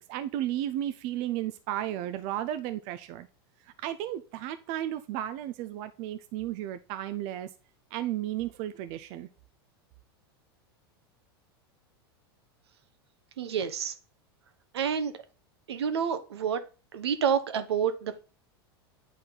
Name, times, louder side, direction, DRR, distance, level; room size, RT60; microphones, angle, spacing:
voice 1, 0.0-3.3 3.8-7.5 7.9-9.3, right 12 dB, 55° right, 0.6 m, -33 dB
voice 2, 13.4-13.9 14.7-15.1 15.7-16.6 16.9-18.2, right 7 dB, 85° right, 1.0 m, -28 dB
9.0 x 4.3 x 3.9 m
hypercardioid pair, 105°, 13 cm